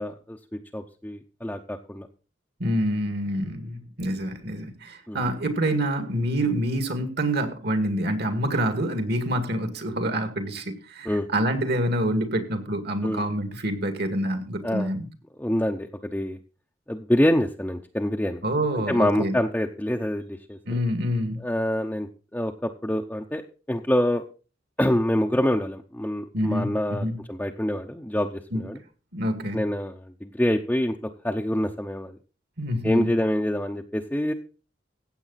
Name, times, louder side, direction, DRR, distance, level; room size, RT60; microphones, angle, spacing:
voice 1, 0.0-2.1 5.1-5.2 11.0-11.3 13.0-13.3 14.6-14.9 15.4-16.4 16.9-18.4 18.9-20.8 21.4-23.4 23.7-24.2 24.8-28.8 29.5-31.0 31.2-32.2 32.8-34.3, left 1 dB, 10° left, 1 dB, 0.8 m, -26 dB
voice 2, 2.6-15.1 18.4-19.3 20.7-21.4 26.3-26.7 27.0-27.2 28.5-28.6 29.1-29.6 32.6-33.1, right 1 dB, 60° right, 7 dB, 2.2 m, -27 dB
15.5 x 8.3 x 4.1 m, 0.34 s
head